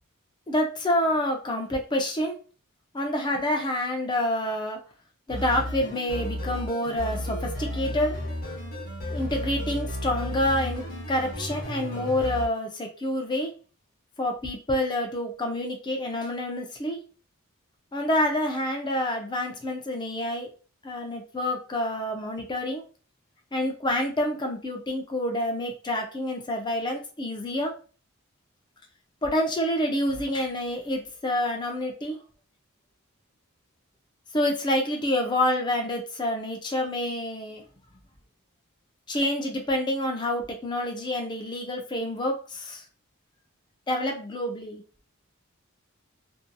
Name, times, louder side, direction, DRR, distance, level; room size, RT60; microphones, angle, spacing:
voice 1, 0.5-2.3 2.9-4.8 5.3-8.2 9.1-13.5 14.2-17.0 17.9-20.5 20.8-22.8 23.5-27.7 29.2-32.2 34.3-37.6 39.1-42.8 43.9-44.8, left 1 dB, 20° left, 2 dB, 0.4 m, -28 dB
sound 1, 5.3-12.5, equal, 40° left, 0.8 m, -33 dB
2.7 x 2.5 x 2.2 m, 0.38 s
head